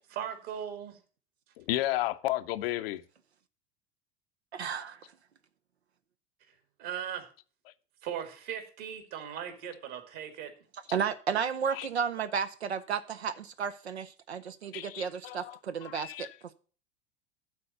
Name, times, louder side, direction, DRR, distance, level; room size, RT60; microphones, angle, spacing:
voice 1, 0.2-0.9 6.8-7.3 8.0-10.5, right 9 dB, 60° right, 2.1 m, -38 dB
voice 2, 1.6-3.0 11.7-11.9 14.7-16.3, left 15 dB, 65° left, 0.7 m, -33 dB
voice 3, 4.5-5.1 10.9-16.3, right 7 dB, 90° right, 0.6 m, -33 dB
11.5 x 4.1 x 6.7 m
figure-of-eight pair, 75°, 32 cm